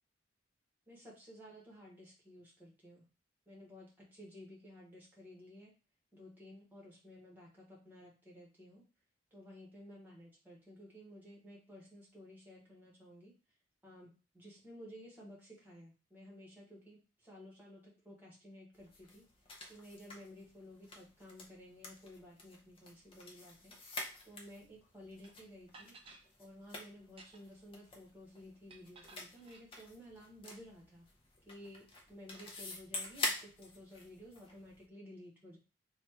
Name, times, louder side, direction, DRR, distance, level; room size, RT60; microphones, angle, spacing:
voice 1, 0.9-3.1 3.5-5.7 6.1-8.8 9.3-13.3 13.8-19.2 19.7-23.7 24.2-26.0 26.4-31.1 31.4-35.6, equal, 10° right, -4 dB, 1.3 m, -54 dB
sound 1, 18.7-34.8, left 2 dB, 30° left, 0.6 m, -47 dB
sound 2, 25.2-25.3 25.7-26.3 27.0-27.6 28.7-29.7, right 3 dB, 30° right, 0.5 m, -57 dB
3.2 x 2.3 x 4.3 m, 0.32 s
head